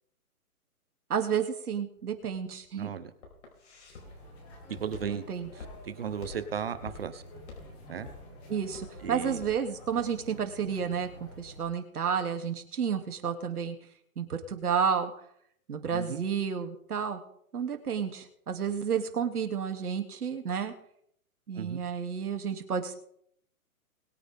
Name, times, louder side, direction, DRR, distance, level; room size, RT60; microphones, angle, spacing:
voice 1, 1.1-2.9 5.0-5.5 8.5-13.8 14.2-15.1 15.7-17.2 17.5-20.7 21.5-23.0, right 7 dB, 80° right, 5 dB, 2.9 m, -31 dB
Walk footsteps, 2.0-10.1, left 3 dB, 55° left, 5.1 m, -47 dB
voice 2, 2.7-3.1 4.8-5.2 5.5-7.2 7.9-8.1 9.0-9.4 15.9-16.2 21.6-21.8, right 7 dB, 40° right, 12 dB, 1.1 m, -36 dB
sound 1, 3.9-11.6, equal, 10° left, 1.5 m, -49 dB
22.0 x 9.2 x 3.7 m, 0.69 s
hypercardioid pair, 175°, 44 cm